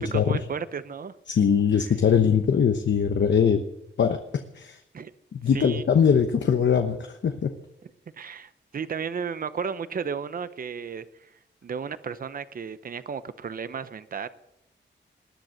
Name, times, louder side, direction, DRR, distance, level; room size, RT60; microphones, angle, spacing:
voice 1, 0.1-1.1 4.9-5.1 5.5-5.8 8.2-11.3 11.6-14.3, right 6 dB, 45° right, 14 dB, 0.7 m, -33 dB
voice 2, 1.3-3.6 4.0-4.2 4.5-4.8 5.3-7.5, left 7 dB, 70° left, 6 dB, 1.1 m, -21 dB
20.0 x 10.5 x 6.5 m, 0.85 s
wide cardioid pair, 165°, 19 cm